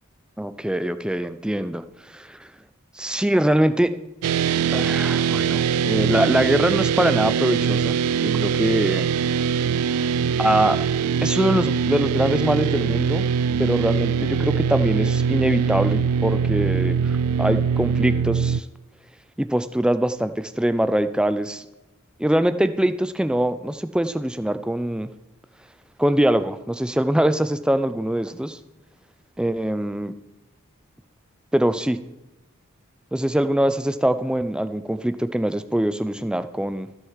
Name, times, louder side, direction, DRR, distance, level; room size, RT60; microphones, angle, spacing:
voice 1, 0.4-2.5 2.9-3.9 4.7-9.1 10.4-10.8 11.2-13.3 13.6-18.7 19.4-21.7 22.2-25.1 26.0-28.6 29.4-30.1 31.5-32.0 33.1-36.9, right 1 dB, 5° right, 12 dB, 0.3 m, -23 dB
sound 1, 4.2-18.6, right 7 dB, 85° right, 0.3 m, -22 dB
13.5 x 6.3 x 4.7 m, 1.0 s
head